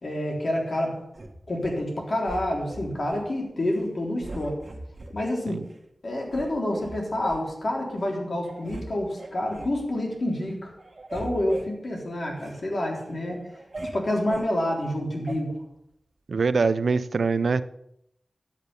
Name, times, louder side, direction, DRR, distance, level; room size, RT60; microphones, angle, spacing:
voice 1, 0.0-1.0 1.5-4.6 5.1-5.6 6.0-10.7 11.1-13.4 13.9-15.5, left 1 dB, 60° left, -1 dB, 3.8 m, -28 dB
sound 1, 1.1-1.8 2.3-3.2 3.6-3.9 4.2-5.1 5.7-5.8 6.3-7.4 8.0-8.1 8.4-8.9 9.2-9.8 10.2-10.5 10.8-12.6 13.0-14.5 15.3-15.4, right 2 dB, 50° right, 1.6 m, -40 dB
voice 2, 16.3-17.6, right 4 dB, 80° right, 14 dB, 0.5 m, -23 dB
10.5 x 8.0 x 6.9 m, 0.80 s
wide cardioid pair, 70°, 0 cm